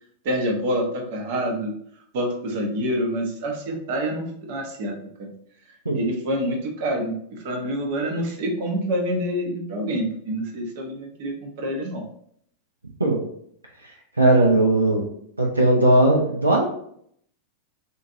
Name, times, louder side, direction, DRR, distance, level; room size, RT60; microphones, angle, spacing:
voice 1, 0.2-1.7 2.1-5.3 5.9-12.0, equal, 50° right, 2 dB, 0.7 m, -27 dB
voice 2, 13.8-15.0 15.4-16.7, right 1 dB, 80° right, -1 dB, 0.5 m, -18 dB
3.7 x 2.4 x 2.7 m, 0.67 s
figure-of-eight pair, 90°, 0 cm